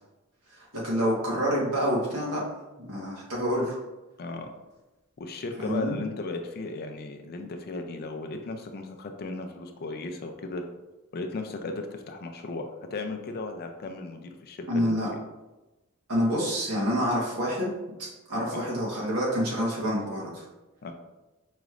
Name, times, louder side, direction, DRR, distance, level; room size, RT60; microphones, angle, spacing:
voice 1, 0.6-2.4 2.9-3.8 5.6-6.0 14.7-15.1 16.1-17.7 18.0-20.4, equal, 85° right, -6 dB, 1.4 m, -27 dB
voice 2, 4.2-4.5 5.2-10.6 11.1-15.2 18.5-18.7 20.8-20.9, left 3 dB, 45° left, 5 dB, 0.4 m, -36 dB
5.0 x 3.1 x 2.4 m, 1.1 s
head